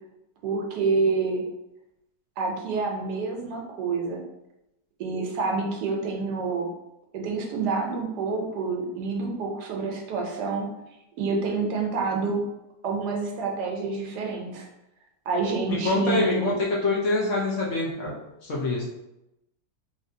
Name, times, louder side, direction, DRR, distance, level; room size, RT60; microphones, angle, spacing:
voice 1, 0.4-1.4 2.4-4.2 5.0-6.7 7.1-10.7 11.2-12.4 12.8-14.7 15.3-16.5, right 4 dB, 75° right, 1 dB, 1.2 m, -28 dB
voice 2, 15.7-18.2 18.4-18.8, left 3 dB, 60° left, -4 dB, 0.8 m, -25 dB
3.1 x 2.7 x 2.6 m, 0.90 s
omnidirectional pair, 1.8 m